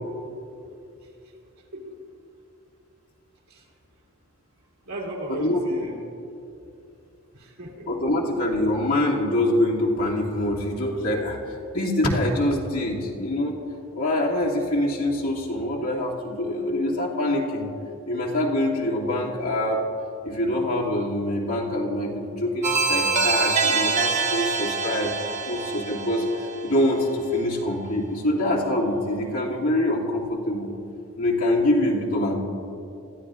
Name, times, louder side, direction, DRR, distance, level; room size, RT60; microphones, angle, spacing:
voice 1, 4.9-6.0 7.3-7.9, right 1 dB, 90° right, -3 dB, 2.8 m, -35 dB
voice 2, 7.9-13.6 13.9-17.7 18.1-19.8 20.2-25.1 25.4-26.3 26.6-30.7 31.2-32.3, left 1 dB, 80° left, -5 dB, 2.5 m, -25 dB
sound 1, 22.6-27.4, right 4 dB, 35° right, 0.9 m, -25 dB
22.0 x 14.5 x 2.5 m, 2.6 s
head